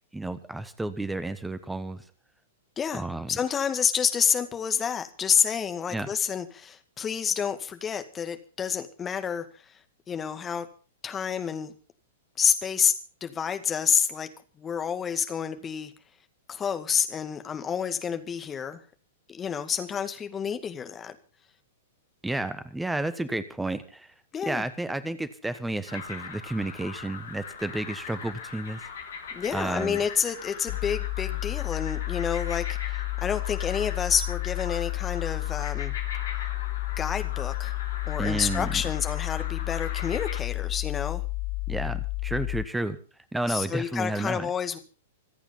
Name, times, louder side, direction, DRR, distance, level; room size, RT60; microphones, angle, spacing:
voice 1, 0.1-2.0 2.9-3.4 5.9-6.1 22.2-24.1 24.5-28.8 29.5-30.0 38.2-38.8 41.7-43.0 43.3-44.5, right 2 dB, 5° right, 14 dB, 1.2 m, -31 dB
voice 2, 3.3-9.5 10.1-10.7 11.0-11.7 12.4-12.9 13.2-14.3 14.6-15.9 16.5-18.8 19.3-21.2 24.3-24.6 29.3-35.9 37.0-37.7 38.1-41.2 43.5-44.8, left 7 dB, 20° left, 8 dB, 2.1 m, -29 dB
sound 1, 25.9-40.4, left 6 dB, 60° left, 3.2 m, -40 dB
sound 2, 30.7-42.7, left 24 dB, 40° left, 0.9 m, -31 dB
26.0 x 8.8 x 5.6 m, 0.38 s
figure-of-eight pair, 105°, 0 cm